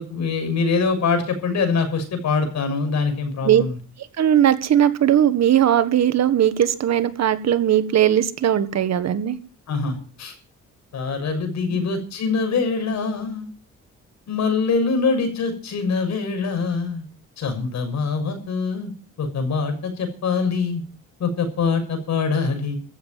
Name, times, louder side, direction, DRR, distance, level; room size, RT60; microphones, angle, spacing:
voice 1, 0.0-3.8 9.7-10.3 10.9-13.5 14.3-17.0 17.4-18.9 19.2-20.8 21.2-22.8, left 4 dB, 65° left, 6 dB, 6.8 m, -24 dB
voice 2, 4.2-9.4, right 10 dB, 60° right, 12 dB, 1.6 m, -18 dB
15.0 x 7.7 x 9.1 m, 0.39 s
cardioid pair, 90°, 30 cm